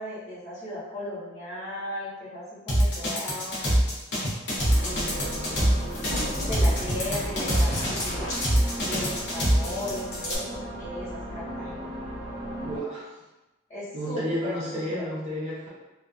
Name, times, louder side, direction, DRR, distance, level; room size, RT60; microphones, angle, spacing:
voice 1, 0.0-3.6 4.8-5.7 6.4-8.4 8.8-12.0 13.7-15.0, left 1 dB, 40° left, -12 dB, 1.5 m, -37 dB
sound 1, 2.7-10.4, equal, 60° left, 0.8 m, -24 dB
sound 2, 3.6-3.7 6.1-8.7, equal, 75° left, 1.1 m, -37 dB
sound 3, 4.5-12.8, equal, 80° right, 0.8 m, -36 dB
voice 2, 12.6-13.1 13.9-15.7, equal, 35° right, -10 dB, 0.5 m, -31 dB
2.7 x 2.3 x 2.3 m, 1.1 s
head